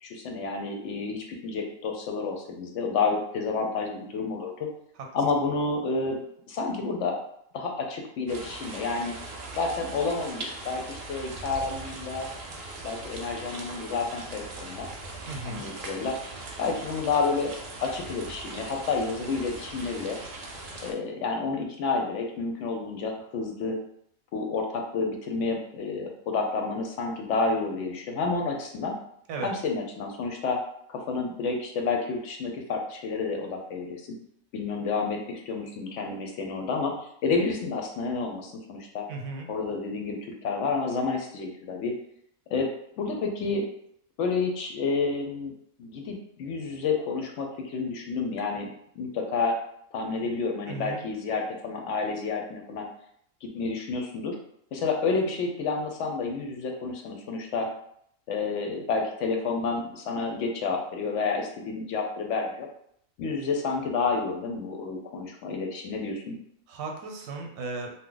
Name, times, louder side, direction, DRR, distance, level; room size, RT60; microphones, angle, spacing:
voice 1, 0.0-4.7 5.1-6.2 6.5-7.2 7.5-9.1 9.6-12.3 12.8-14.9 15.5-16.2 16.6-17.5 17.8-20.2 20.8-23.8 24.3-28.9 29.4-30.6 30.9-34.0 34.5-39.1 39.5-41.9 42.5-42.7 43.0-43.6 44.2-45.5 45.8-48.7 49.0-49.6 49.9-52.9 53.4-54.4 54.7-57.7 58.3-62.7 63.2-66.4, left 4 dB, 70° left, 2 dB, 0.8 m, -30 dB
sound 1, 8.3-20.9, right 2 dB, 60° right, 0.7 m, -40 dB
voice 2, 15.3-15.6 29.3-29.5 39.1-39.5 50.7-51.0 66.7-67.9, right 3 dB, 90° right, 2 dB, 1.0 m, -35 dB
2.8 x 2.1 x 3.7 m, 0.69 s
omnidirectional pair, 1.4 m